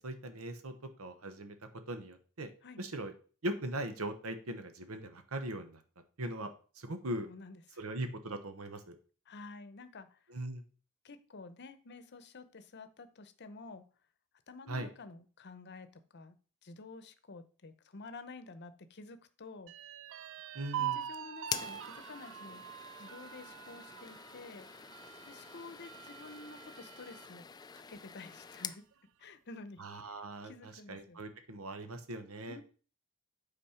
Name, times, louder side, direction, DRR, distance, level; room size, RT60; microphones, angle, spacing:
voice 1, 0.0-1.5 1.9-2.5 2.8-3.1 3.4-5.8 6.2-6.5 6.7-7.3 7.8-8.9 10.3-10.6 14.7-14.9 20.5-21.0 29.8-30.5 30.9-32.6, right 1 dB, 85° right, 8 dB, 1.1 m, -40 dB
voice 2, 7.3-7.8 9.3-10.3 11.0-13.9 14.5-16.3 16.6-19.7 20.8-22.7 23.0-24.7 25.3-28.8 29.2-31.2 32.5-32.6, left 3 dB, 50° left, 11 dB, 0.8 m, -50 dB
sound 1, 19.7-27.3 27.8-27.9 28.3-28.9, right 11 dB, 60° right, 0.4 m, -44 dB
sound 2, 21.4-28.8, left 7 dB, 20° left, 0.3 m, -46 dB
8.6 x 4.2 x 5.7 m, 0.39 s
head